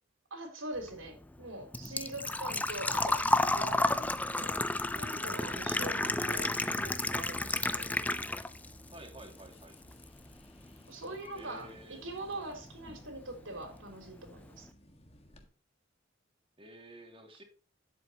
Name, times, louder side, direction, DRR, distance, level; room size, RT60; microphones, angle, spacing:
voice 1, 0.3-4.1 4.4-4.7 5.0-7.9 10.9-14.7, right 2 dB, 80° right, 4 dB, 3.6 m, -43 dB
Engine / Trickle dribble / Fill (with liquid), 0.8-8.7 9.1-10.0 10.3-10.4 12.3-12.4 12.6-13.0 13.3-13.4 13.7-13.8, left 2 dB, 10° left, 0.4 m, -31 dB
sound 1, 1.8-15.4, left 1 dB, 30° left, 1.6 m, -55 dB
voice 2, 8.9-9.8 11.4-12.0 16.6-17.4, right 1 dB, 30° right, 3 dB, 2.5 m, -51 dB
10.0 x 8.1 x 2.9 m, 0.40 s
head